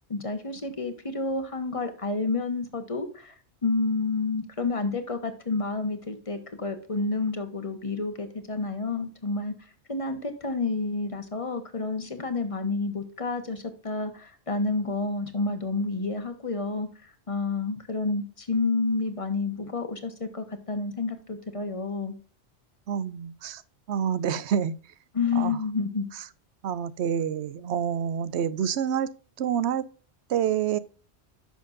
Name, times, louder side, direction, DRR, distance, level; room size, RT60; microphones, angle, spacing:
voice 1, 0.1-3.3 3.6-9.5 9.9-22.2 25.1-26.1, left 3 dB, 30° left, 1.2 m, -29 dB
voice 2, 22.9-23.6 23.9-24.7 25.4-25.6 26.6-29.1 29.4-29.8 30.3-30.8, right 8 dB, 75° right, 0.9 m, -27 dB
10.5 x 6.4 x 2.6 m
omnidirectional pair, 1.2 m